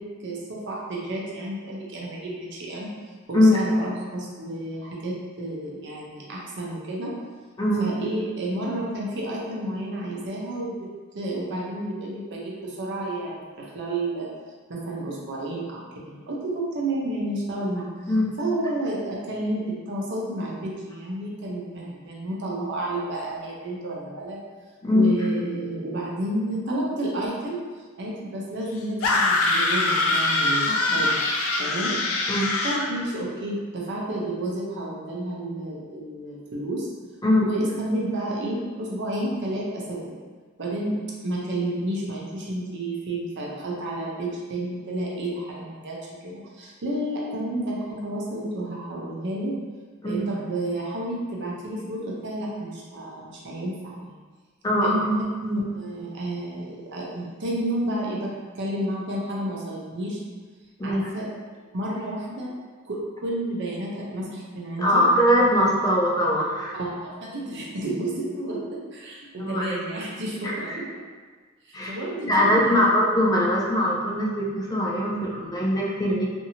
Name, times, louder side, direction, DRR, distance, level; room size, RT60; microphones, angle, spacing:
voice 1, 0.0-2.9 3.3-7.1 7.8-14.3 14.7-17.9 18.4-24.4 24.9-27.6 28.0-31.2 31.6-31.9 32.6-36.9 37.4-40.2 40.6-49.6 50.0-54.2 54.8-60.2 60.8-61.3 61.7-62.5 62.9-65.0 66.7-70.8 71.7-72.9, right 1 dB, 60° right, -3 dB, 0.6 m, -31 dB
voice 2, 24.8-25.1 30.7-30.9 32.3-32.5 37.2-37.5 50.0-50.3 54.6-55.1 60.8-61.1 64.8-66.8 69.4-69.7 70.4-70.5 71.7-71.9 72.3-76.3, left 1 dB, 20° left, -4 dB, 0.4 m, -21 dB
sound 1, 29.0-32.9, left 2 dB, 90° left, 0.4 m, -23 dB
2.7 x 2.6 x 2.8 m, 1.5 s
head